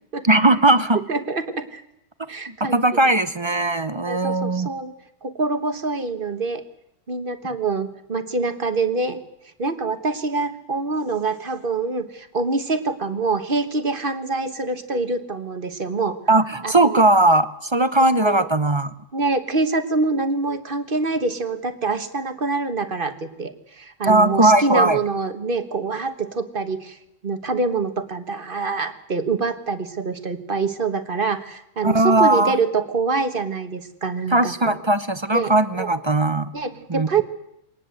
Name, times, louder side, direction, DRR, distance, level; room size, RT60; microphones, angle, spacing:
voice 1, 0.2-1.0 2.5-4.7 16.3-18.9 24.0-25.0 31.8-32.5 34.3-36.5 36.9-37.2, right 2 dB, 25° right, 13 dB, 0.7 m, -18 dB
voice 2, 1.1-1.8 2.3-3.2 4.1-4.9 5.2-6.6 7.1-9.2 9.6-16.2 16.6-17.0 18.0-18.5 19.1-27.0 27.2-34.8 35.3-35.9 36.5-37.2, right 3 dB, 45° right, 10 dB, 1.6 m, -25 dB
23.0 x 19.0 x 7.8 m, 0.82 s
omnidirectional pair, 1.3 m